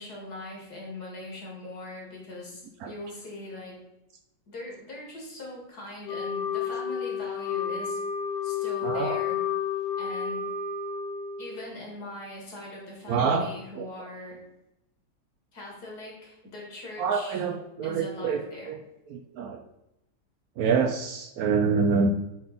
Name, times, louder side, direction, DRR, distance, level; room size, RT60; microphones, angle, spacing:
voice 1, 0.0-3.8 4.5-8.0 8.4-9.4 10.0-10.5 11.4-14.4 15.5-17.4 17.8-18.7, left 2 dB, 65° left, -3 dB, 2.5 m, -41 dB
Wind instrument woodwind instrument, 6.1-11.7, left 7 dB, 85° left, 1.3 m, -31 dB
voice 2, 8.8-9.2 13.1-13.5 13.8-13.9 17.0-18.8 19.1-19.6 20.6-22.1, right 5 dB, 70° right, 5 dB, 0.9 m, -26 dB
7.5 x 3.8 x 4.1 m, 0.88 s
omnidirectional pair, 1.8 m